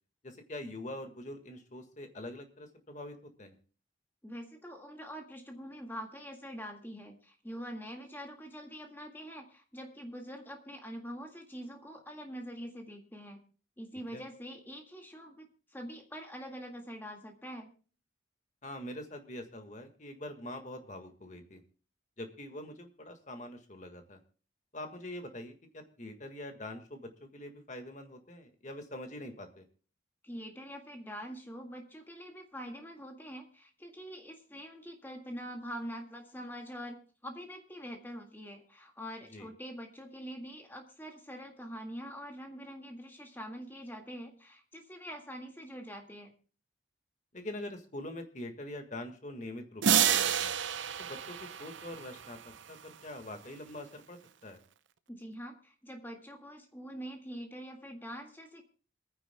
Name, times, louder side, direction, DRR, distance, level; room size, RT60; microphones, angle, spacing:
voice 1, 0.2-3.5 14.1-14.2 18.6-21.6 22.2-24.2 24.7-29.6 39.3-39.5 47.3-50.5 51.0-54.6, left 1 dB, 40° left, 6 dB, 1.7 m, -44 dB
voice 2, 4.2-13.4 13.8-17.7 30.2-46.3 55.1-58.6, equal, 10° left, 3 dB, 1.8 m, -44 dB
sound 1, 49.8-52.3, right 9 dB, 75° right, 0.7 m, -29 dB
27.0 x 9.8 x 2.2 m, 0.39 s
head